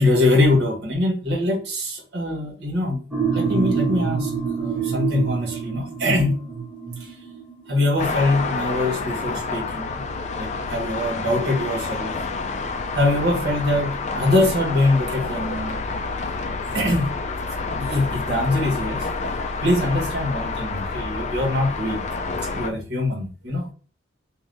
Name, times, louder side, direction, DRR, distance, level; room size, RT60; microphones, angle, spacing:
voice 1, 0.0-3.0 3.3-4.3 4.6-6.3 7.0-7.1 7.7-10.0 10.4-15.7 16.6-17.1 17.7-19.1 19.4-22.0 22.5-23.7, left 2 dB, 55° right, -1 dB, 1.3 m, -23 dB
sound 1, 3.1-9.6, right 6 dB, 5° right, 0.8 m, -27 dB
sound 2, 8.0-22.7, left 4 dB, 35° left, 0.3 m, -29 dB
3.4 x 2.6 x 3.9 m, 0.37 s
head